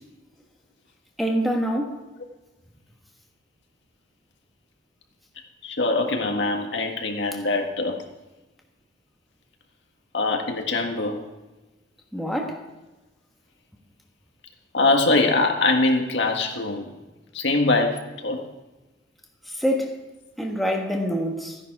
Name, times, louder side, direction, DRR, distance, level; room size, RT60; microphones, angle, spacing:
voice 1, 1.2-2.0 12.1-12.6 19.5-20.0 20.4-21.6, equal, ahead, 0 dB, 1.4 m, -25 dB
voice 2, 5.6-8.0 10.1-11.2 14.7-16.9 17.3-18.4, left 2 dB, 65° left, 3 dB, 1.7 m, -23 dB
14.0 x 10.5 x 4.8 m, 1.1 s
head